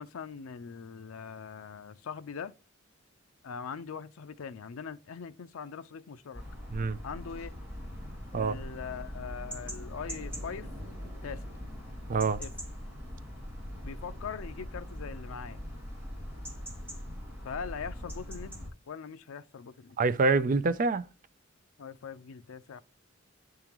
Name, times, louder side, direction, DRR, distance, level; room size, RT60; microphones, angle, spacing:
voice 1, 0.0-2.5 3.4-6.4 7.0-7.5 8.3-10.7 11.0-11.4 12.4-12.5 13.8-15.6 17.4-18.6 18.9-20.0 21.8-22.8, left 6 dB, 90° left, 0.4 m, -41 dB
sound 1, 6.3-18.7, equal, 10° right, 2.5 m, -41 dB
voice 2, 12.1-12.4 20.0-21.0, right 4 dB, 40° right, 0.4 m, -26 dB
10.0 x 3.7 x 3.0 m
head